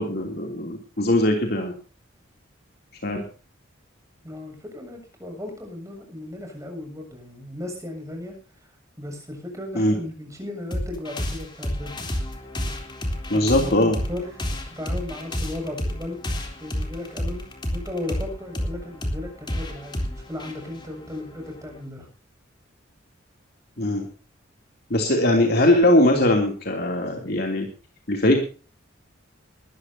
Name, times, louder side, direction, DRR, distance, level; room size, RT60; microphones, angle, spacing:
voice 1, 0.0-1.7 3.0-3.2 9.7-9.9 13.3-14.0 23.8-24.1 24.9-27.7 28.1-28.4, left 1 dB, 50° left, 2 dB, 3.0 m, -20 dB
voice 2, 4.2-8.7 9.0-12.0 13.3-14.4 14.7-16.2 16.6-17.4 17.7-22.1, left 1 dB, 15° right, 3 dB, 7.3 m, -35 dB
sound 1, 10.7-21.8, left 1 dB, 25° left, 3.6 m, -31 dB
21.0 x 14.0 x 2.8 m, 0.37 s
head